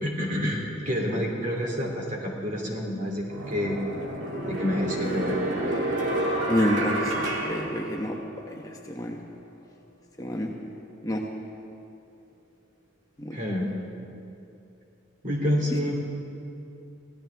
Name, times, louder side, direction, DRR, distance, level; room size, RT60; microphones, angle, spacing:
voice 1, 0.0-3.8 4.5-5.4 13.3-13.7 15.2-16.0, equal, 45° right, -1 dB, 2.9 m, -28 dB
sound 1, 2.6-2.7 3.3-8.5, right 1 dB, 80° right, 2.2 m, -29 dB
voice 2, 6.5-8.2 8.5-8.6 8.9-9.2 10.2-10.5 11.0-11.2 13.2-13.4, equal, 20° left, 0 dB, 1.0 m, -28 dB
24.0 x 17.0 x 3.5 m, 2.7 s
head